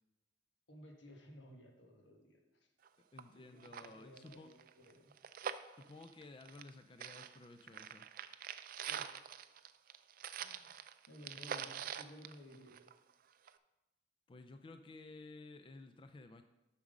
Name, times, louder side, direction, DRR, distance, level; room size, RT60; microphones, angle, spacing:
voice 1, 0.7-2.7 3.3-5.1 8.9-9.1 10.4-10.7 11.1-12.8, equal, 85° left, 2 dB, 1.5 m, -57 dB
sound 1, 2.8-2.9 3.2-3.3 3.6-6.7 7.0-13.1 13.5-13.6, right 8 dB, 50° right, 0.4 m, -45 dB
voice 2, 3.1-4.5 5.8-8.1 14.3-16.4, left 3 dB, 30° left, 8 dB, 0.3 m, -54 dB
7.4 x 6.0 x 5.2 m, 0.97 s
head